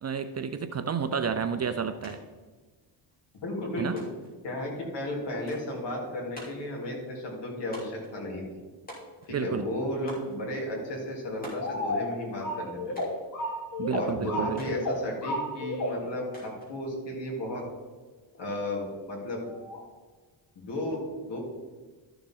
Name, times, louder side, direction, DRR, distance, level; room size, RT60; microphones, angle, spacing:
voice 1, 0.0-2.2 3.8-4.0 9.3-9.7 13.8-14.6, right 6 dB, 35° right, 9 dB, 0.5 m, -30 dB
sound 1, 2.0-2.2 2.4-3.2 4.0-4.4 5.5-5.8 6.3-6.7 7.7-8.1 8.9-9.4 10.1-10.4 11.4-11.8 12.9-13.3 14.6-14.8 16.3-16.7, equal, 20° left, 3.3 m, -45 dB
voice 2, 3.4-4.0 4.4-8.5 9.3-13.0 13.9-17.6 18.4-19.4 20.6-21.4, left 1 dB, 60° left, -2 dB, 3.3 m, -34 dB
sound 2, 11.5-16.2 19.5-19.8, left 1 dB, 40° left, 1.9 m, -33 dB
13.0 x 6.9 x 3.8 m, 1.4 s
cardioid pair, 120°, 47 cm